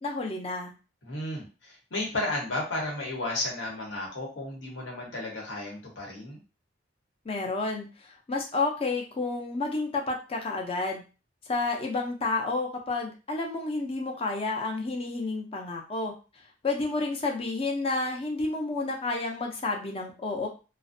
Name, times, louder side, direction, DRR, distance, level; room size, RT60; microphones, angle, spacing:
voice 1, 0.0-0.7 7.3-7.9 8.3-11.0 11.5-16.1 16.6-20.5, left 3 dB, 30° left, 1 dB, 0.5 m, -30 dB
voice 2, 1.0-6.4, left 2 dB, 90° left, -2 dB, 1.0 m, -33 dB
2.5 x 2.0 x 2.5 m, 0.33 s
head